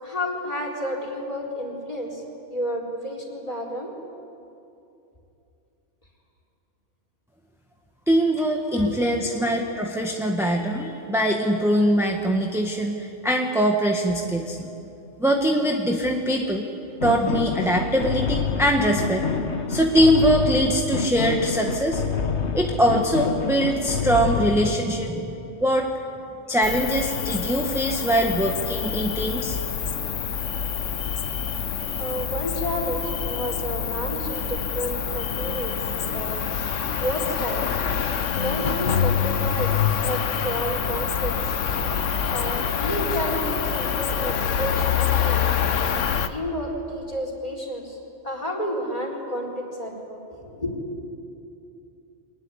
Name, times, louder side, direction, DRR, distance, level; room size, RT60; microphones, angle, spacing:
voice 1, 0.0-2.2 2.5-3.9 8.4-9.1 32.0-36.4 37.0-37.7 38.3-41.5 42.3-45.6 46.3-48.0 48.2-50.8, equal, 30° left, 0 dB, 4.1 m, -31 dB
voice 2, 8.1-14.7 15.2-16.7 17.0-19.3 19.7-22.0 22.5-25.9 26.5-29.6, equal, ahead, 1 dB, 1.4 m, -22 dB
sound 1, 17.0-24.8, left 5 dB, 65° left, 1.4 m, -27 dB
Cricket, 26.6-46.3, left 7 dB, 90° left, 1.3 m, -26 dB
24.5 x 20.0 x 9.8 m, 2.8 s
omnidirectional pair, 1.2 m